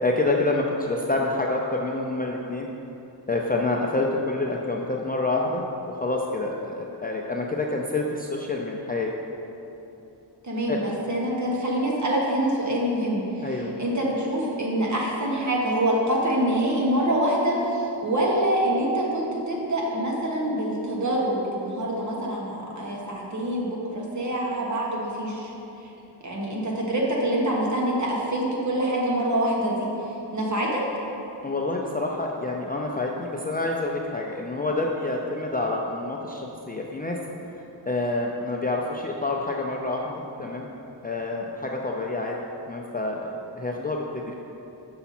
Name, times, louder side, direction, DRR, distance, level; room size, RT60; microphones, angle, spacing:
voice 1, 0.0-2.7 3.3-5.6 6.0-9.1 10.7-10.9 13.4-13.7 31.4-37.2 37.9-40.7 41.0-42.4 42.7-44.3, left 2 dB, 20° left, -1 dB, 0.4 m, -27 dB
voice 2, 10.4-13.5 13.8-25.5 26.2-29.9 30.3-30.8, right 1 dB, 40° right, -3 dB, 1.4 m, -25 dB
6.9 x 5.6 x 4.2 m, 3.0 s
wide cardioid pair, 95°, 43 cm